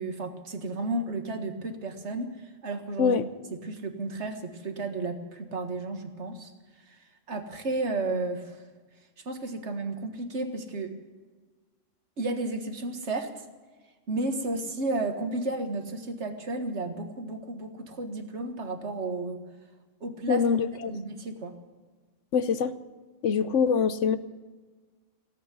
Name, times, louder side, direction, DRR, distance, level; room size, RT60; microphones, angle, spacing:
voice 1, 0.0-3.2 3.5-6.5 6.9-7.0 7.3-8.6 9.3-10.9 12.2-13.4 14.1-19.4 20.0-20.4 20.8-21.5, right 2 dB, 65° right, 6 dB, 1.9 m, -33 dB
voice 2, 20.3-21.0 22.3-22.7 23.2-24.2, left 6 dB, 70° left, 13 dB, 1.2 m, -24 dB
18.0 x 8.7 x 9.3 m, 1.4 s
omnidirectional pair, 1.3 m